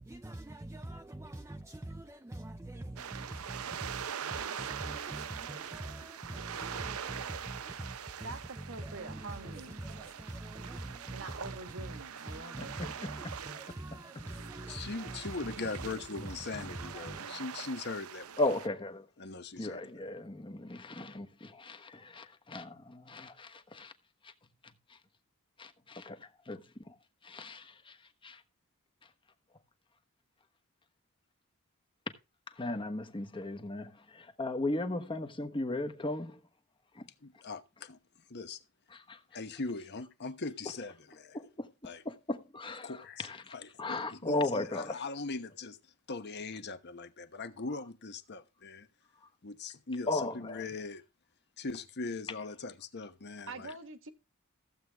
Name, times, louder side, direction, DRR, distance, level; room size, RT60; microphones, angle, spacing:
voice 1, 0.0-17.2, right 1 dB, 15° right, 0.5 m, -44 dB
sound 1, 3.0-18.7, right 8 dB, 85° right, 0.6 m, -43 dB
voice 2, 8.2-9.8 11.1-12.8 53.5-54.1, right 3 dB, 65° right, 1.5 m, -45 dB
voice 3, 12.6-13.4 13.7-14.2 18.4-19.1 19.6-23.9 24.2-24.3 24.9-25.0 25.6-26.9 27.2-28.0 28.2-28.4 32.6-36.4 36.9-37.1 38.9-39.2 41.3-45.0 50.1-50.6, left 2 dB, 25° left, 1.1 m, -37 dB
voice 4, 14.7-18.4 19.2-20.1 37.2-38.0 38.3-38.6 39.3-41.4 41.8-42.0 42.8-48.9 49.4-51.0 51.6-53.7, left 3 dB, 50° left, 1.1 m, -40 dB
14.5 x 7.9 x 3.5 m
head